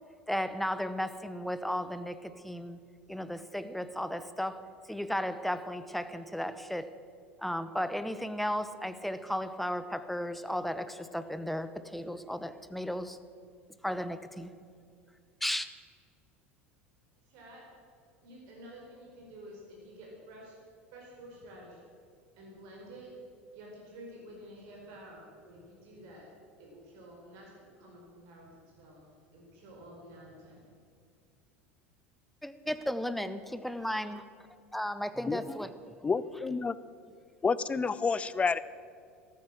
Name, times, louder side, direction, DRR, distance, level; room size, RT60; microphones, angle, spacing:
voice 1, 0.3-2.8 3.1-6.9 7.4-13.2 13.8-14.5 15.4-15.7 32.4-34.3 34.7-36.1, equal, ahead, 12 dB, 1.0 m, -35 dB
voice 2, 17.2-17.6 18.2-20.6 20.9-21.8 22.3-23.1 23.5-26.3 26.6-28.5 28.8-29.0 29.3-30.6 33.5-33.8, right 1 dB, 55° right, -2 dB, 4.3 m, -50 dB
voice 3, 36.0-36.7 37.4-38.6, left 5 dB, 20° left, 17 dB, 0.6 m, -29 dB
14.0 x 13.0 x 7.6 m, 2.3 s
figure-of-eight pair, 75°, 6 cm